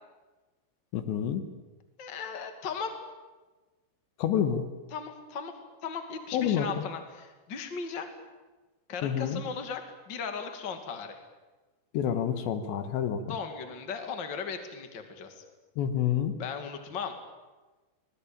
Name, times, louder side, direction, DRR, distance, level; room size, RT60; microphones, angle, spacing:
voice 1, 0.9-1.4 4.2-4.7 6.3-6.7 9.0-9.4 11.9-13.2 15.8-16.3, left 9 dB, 80° left, 9 dB, 3.7 m, -28 dB
voice 2, 2.0-2.9 4.9-5.5 5.8-8.1 8.9-9.8 10.1-11.2 13.2-15.4 16.4-17.1, left 6 dB, 35° left, 6 dB, 2.2 m, -37 dB
25.5 x 20.5 x 8.8 m, 1.2 s
omnidirectional pair, 5.1 m